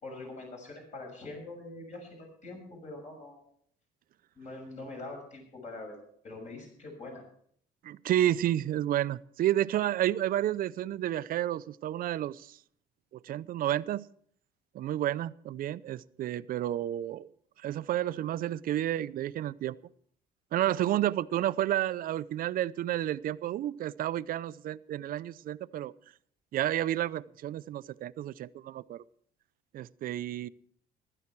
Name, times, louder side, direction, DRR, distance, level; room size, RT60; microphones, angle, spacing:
voice 1, 0.0-3.4 4.3-6.0 6.2-7.2 30.4-30.5, left 2 dB, 45° left, 1 dB, 6.5 m, -44 dB
voice 2, 7.8-12.6 13.2-14.0 14.7-17.3 17.6-19.8 20.5-25.9 26.5-29.0 29.7-30.5, right 12 dB, 55° right, 16 dB, 0.5 m, -31 dB
15.5 x 13.0 x 4.6 m, 0.63 s
cardioid pair, 110°, 17 cm